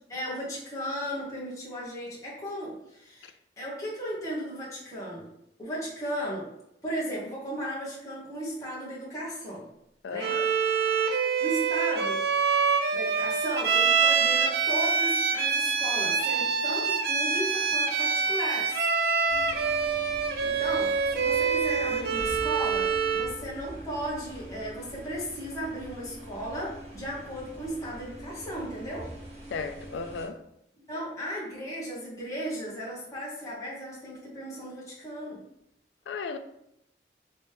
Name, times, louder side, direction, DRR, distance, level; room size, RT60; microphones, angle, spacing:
voice 1, 0.1-5.3 5.6-6.5 6.8-9.7 10.1-10.4 11.4-12.2 12.9-18.8 19.8-20.0 20.4-29.1 30.8-35.4, equal, 20° left, 1.0 m, -35 dB
voice 2, 10.0-10.5 29.5-30.4 36.1-36.4, left 5 dB, 85° left, 0.3 m, -35 dB
Bowed string instrument, 10.2-23.4, right 5 dB, 60° right, 0.4 m, -26 dB
sound 1, 19.3-30.3, right 1 dB, 40° right, 1.2 m, -44 dB
3.0 x 2.9 x 3.3 m
head